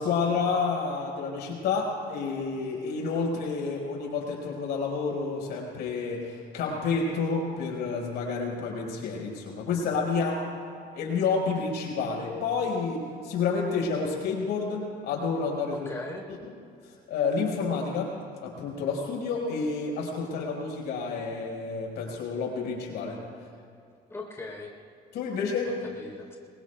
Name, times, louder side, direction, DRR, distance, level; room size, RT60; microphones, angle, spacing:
voice 1, 0.0-10.5 10.9-15.9 17.1-18.2 18.4-23.2 25.1-25.8, left 4 dB, 80° left, -2 dB, 5.0 m, -29 dB
voice 2, 15.7-16.3 24.1-24.7 25.6-26.4, left 2 dB, 15° left, -1 dB, 3.8 m, -40 dB
26.5 x 23.5 x 2.3 m, 2.4 s
cardioid pair, 110°, 17 cm